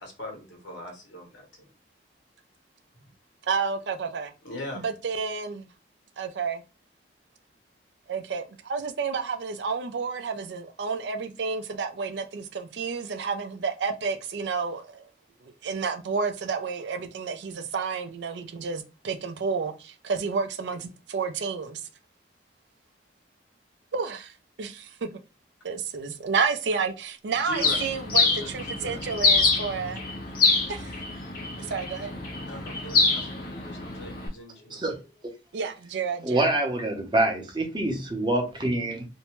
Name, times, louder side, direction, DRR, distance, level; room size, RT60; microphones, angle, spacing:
voice 1, 0.0-1.7 4.4-4.8 27.4-27.8 28.2-29.3 29.7-30.0 32.4-34.9, left 1 dB, 85° left, 1.1 m, -41 dB
voice 2, 3.4-4.3 4.8-5.7 6.2-6.6 8.1-15.1 15.4-21.9 23.9-25.2 25.6-30.0 30.7-30.9 31.6-32.1 35.5-36.5, right 5 dB, 75° right, 0.4 m, -30 dB
Bird, 27.6-34.3, left 4 dB, 50° left, 0.6 m, -26 dB
voice 3, 36.2-39.1, right 1 dB, 25° right, 0.6 m, -26 dB
2.6 x 2.1 x 2.9 m
head